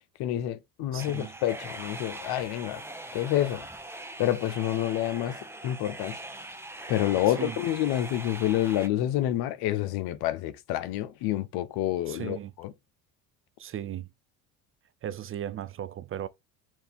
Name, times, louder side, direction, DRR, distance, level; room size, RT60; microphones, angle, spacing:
voice 1, 0.2-2.8 3.1-3.6 4.2-5.4 5.6-6.2 6.9-12.7, left 13 dB, 65° left, 0.8 m, -28 dB
voice 2, 0.9-1.3 7.3-7.6 12.1-12.5 13.6-14.1 15.0-16.3, right 10 dB, 35° right, 0.4 m, -36 dB
sound 1, 1.0-8.9, right 1 dB, 5° right, 0.9 m, -41 dB
4.5 x 2.7 x 3.5 m
supercardioid pair, 95°, 41 cm